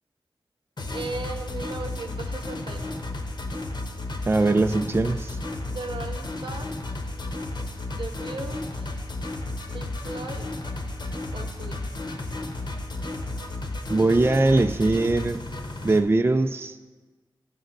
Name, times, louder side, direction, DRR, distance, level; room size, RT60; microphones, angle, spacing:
sound 1, 0.8-16.0, left 2 dB, 60° left, 0.9 m, -33 dB
voice 1, 0.9-3.0 5.7-6.8 7.9-9.0 9.7-10.5 11.3-11.8, right 3 dB, 70° right, 6 dB, 0.8 m, -37 dB
voice 2, 4.3-5.4 13.9-15.4 15.8-16.8, right 2 dB, 25° right, 8 dB, 0.3 m, -21 dB
12.0 x 5.2 x 3.9 m, 1.3 s
wide cardioid pair, 55°, 9 cm